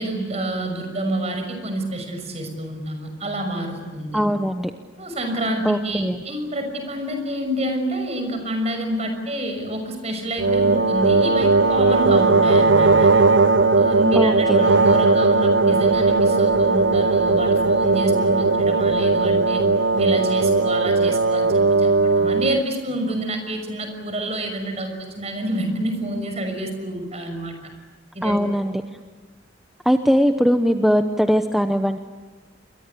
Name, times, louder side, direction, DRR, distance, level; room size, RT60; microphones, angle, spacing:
voice 1, 0.0-4.2 5.0-13.1 13.7-19.6 19.9-27.5 28.1-28.6, right 1 dB, 35° right, 5 dB, 6.1 m, -28 dB
voice 2, 4.1-4.7 5.6-6.2 14.2-14.7 28.2-28.8 29.8-32.0, equal, ahead, 6 dB, 0.8 m, -20 dB
sound 1, 10.4-22.6, right 3 dB, 75° right, 0.8 m, -18 dB
29.0 x 22.5 x 8.4 m, 1.4 s
head